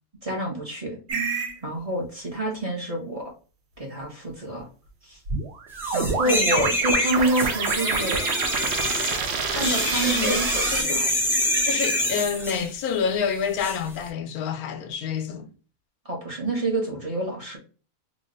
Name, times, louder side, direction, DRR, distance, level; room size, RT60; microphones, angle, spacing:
voice 1, 0.2-1.0 1.6-3.3 3.8-4.7 5.0-5.2 5.9-8.2 9.5-11.1 16.0-17.6, right 1 dB, 25° right, 1.0 m, -28 dB
sound 1, 1.1-1.5 5.3-10.8, right 5 dB, 55° right, 0.8 m, -27 dB
sound 2, 5.8-12.7 13.6-13.8, left 1 dB, 5° right, 0.4 m, -26 dB
voice 2, 9.5-11.1 11.6-15.5, left 7 dB, 90° left, 1.1 m, -28 dB
3.1 x 2.4 x 3.8 m
omnidirectional pair, 1.5 m